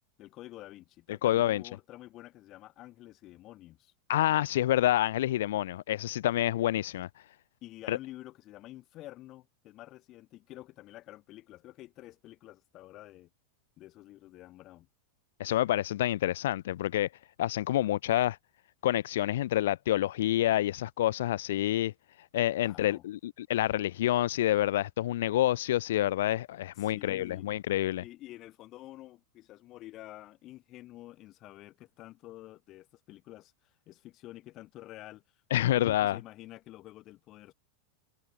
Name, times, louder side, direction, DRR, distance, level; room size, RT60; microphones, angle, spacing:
voice 1, 0.2-3.9 7.6-13.3 13.8-14.9 22.6-23.0 26.8-27.5 28.0-33.5 33.9-35.2 35.6-37.5, left 16 dB, 35° left, 7.0 m, -49 dB
voice 2, 1.1-1.6 4.1-7.1 7.9-8.0 15.4-17.1 17.4-18.4 18.8-21.9 22.3-28.0 35.5-36.2, left 13 dB, 80° left, 1.2 m, -28 dB
supercardioid pair, 150°, 0 cm